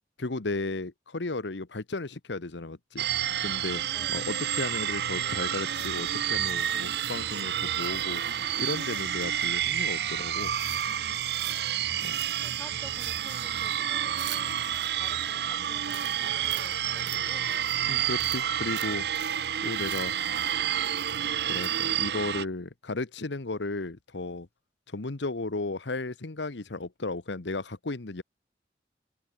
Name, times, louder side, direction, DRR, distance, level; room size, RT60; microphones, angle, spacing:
voice 1, 0.2-3.1 3.4-3.8 4.1-8.2 8.6-10.5 12.0-12.2 17.9-19.0 19.6-20.1 21.5-24.5 24.9-28.2, left 2 dB, 80° left, 1.1 m, -34 dB
sound 1, 3.0-22.4, right 10 dB, 60° right, 0.5 m, -29 dB
voice 2, 3.9-4.2 11.6-14.5 14.9-17.5, left 1 dB, 10° left, 4.0 m, -51 dB
sound 2, 5.7-9.8 10.4-11.7 12.0-15.3 15.8-22.0, right 12 dB, 85° right, 2.8 m, -47 dB
open air
head